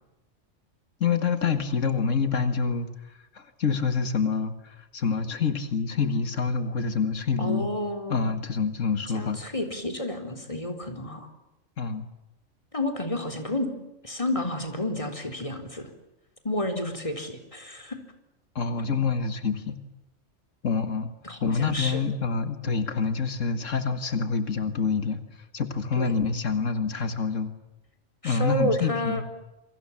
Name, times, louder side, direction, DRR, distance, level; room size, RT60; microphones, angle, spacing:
voice 1, 1.0-2.9 3.3-7.7 8.1-9.4 11.8-12.1 18.6-19.8 20.6-21.1 21.4-25.2 25.5-27.5 28.2-29.2, left 5 dB, 90° left, 9 dB, 2.2 m, -26 dB
voice 2, 7.4-8.3 9.1-11.3 12.7-13.7 14.0-15.9 16.4-18.0 21.2-22.0 25.9-26.2 28.2-29.3, left 1 dB, 25° left, 5 dB, 4.0 m, -30 dB
28.5 x 24.0 x 7.3 m, 0.93 s
omnidirectional pair, 1.3 m